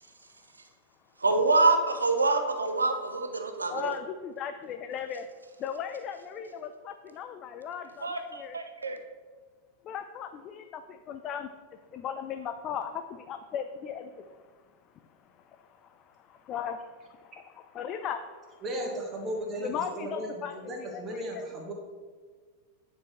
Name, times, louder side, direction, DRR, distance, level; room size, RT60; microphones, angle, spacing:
voice 1, 1.2-3.9 8.0-9.0, right 3 dB, 80° right, 6 dB, 0.7 m, -26 dB
voice 2, 4.4-5.3 5.6-8.6 9.8-11.5 11.9-14.2 16.5-16.8 17.2-18.2 19.6-20.9 21.1-21.4, left 8 dB, 35° left, 7 dB, 0.4 m, -37 dB
voice 3, 18.6-21.7, right 1 dB, 25° right, 0 dB, 1.5 m, -36 dB
9.2 x 4.6 x 3.3 m, 1.5 s
figure-of-eight pair, 90°, 0 cm